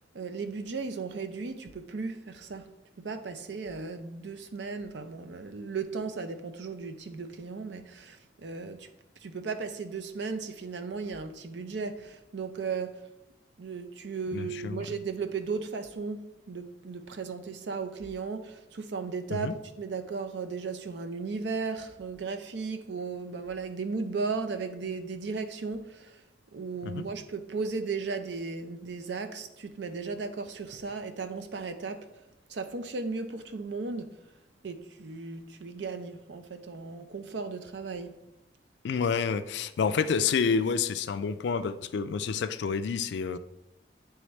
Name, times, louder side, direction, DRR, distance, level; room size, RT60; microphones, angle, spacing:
voice 1, 0.1-8.9 9.2-13.0 13.6-26.2 26.5-32.1 32.5-34.2 34.6-38.2, right 4 dB, 70° right, 0.5 m, -36 dB
voice 2, 14.3-14.9 19.3-19.5 26.8-27.1 38.8-43.4, left 5 dB, 65° left, 0.3 m, -29 dB
9.3 x 3.5 x 3.2 m
head